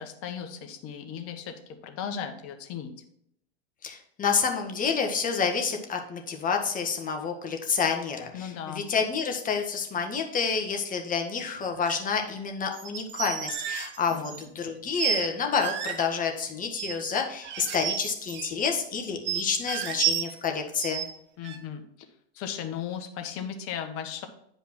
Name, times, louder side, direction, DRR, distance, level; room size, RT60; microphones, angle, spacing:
voice 1, 0.0-1.5 1.8-2.9 8.3-8.8 14.1-14.5 21.4-21.8 22.3-24.3, left 8 dB, 45° left, 6 dB, 1.5 m, -36 dB
voice 2, 3.8-21.0, left 6 dB, 25° left, 4 dB, 1.6 m, -29 dB
sound 1, 11.8-12.0 12.7-14.5 15.0-15.3 15.6-16.1 16.8-17.1 17.4-18.5 19.2-20.5 20.8-21.1 21.4-21.6, right 9 dB, 35° right, 1.2 m, -31 dB
9.3 x 5.3 x 4.4 m, 0.73 s
hypercardioid pair, 115°, 32 cm